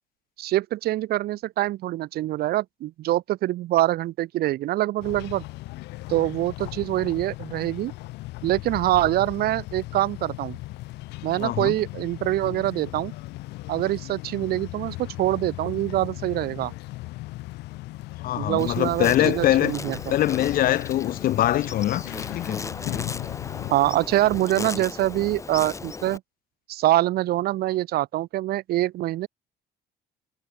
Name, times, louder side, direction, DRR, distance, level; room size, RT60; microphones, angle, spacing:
voice 1, 0.4-5.4 6.1-7.9 8.4-10.6 11.2-13.1 13.7-16.7 18.4-20.0 23.7-26.2 26.7-29.3, right 15 dB, 65° right, 0.7 m, -24 dB
sound 1, 5.0-23.7, left 20 dB, 85° left, 1.3 m, -37 dB
voice 2, 11.4-11.7 18.2-19.7 20.1-22.0 22.3-22.6, left 13 dB, 60° left, 0.7 m, -23 dB
Insect, 18.6-26.2, left 4 dB, 20° left, 0.5 m, -36 dB
cardioid pair, 110°, 17 cm